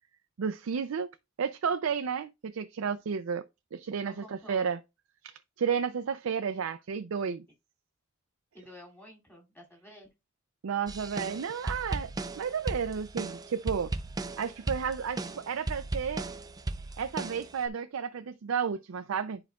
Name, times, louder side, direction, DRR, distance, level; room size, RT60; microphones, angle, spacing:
voice 1, 0.4-1.1 1.4-3.4 3.7-4.8 5.2-7.4 10.6-13.9 14.4-16.3 17.0-19.4, right 6 dB, 85° right, 0.4 m, -32 dB
voice 2, 4.0-4.7 8.5-10.1, left 1 dB, 10° left, 2.5 m, -51 dB
sound 1, 10.9-17.7, right 2 dB, 20° right, 0.4 m, -36 dB
10.5 x 4.8 x 2.3 m
head